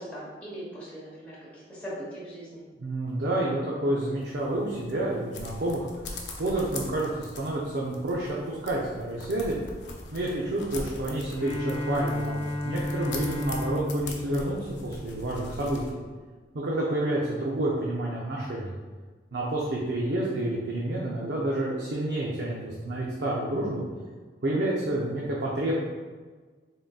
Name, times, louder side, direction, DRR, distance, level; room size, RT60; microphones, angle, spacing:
voice 1, 0.0-1.3 1.7-2.6, equal, 10° left, -9 dB, 0.9 m, -39 dB
voice 2, 2.8-5.9 6.4-9.6 10.1-16.0 16.5-18.7 19.3-23.8 24.4-25.7, right 1 dB, 80° right, -4 dB, 0.5 m, -29 dB
sound 1, 4.2-15.9, left 2 dB, 90° left, 0.6 m, -42 dB
Bowed string instrument, 11.3-15.6, left 1 dB, 35° left, 0.4 m, -33 dB
3.8 x 3.7 x 2.3 m, 1.4 s
head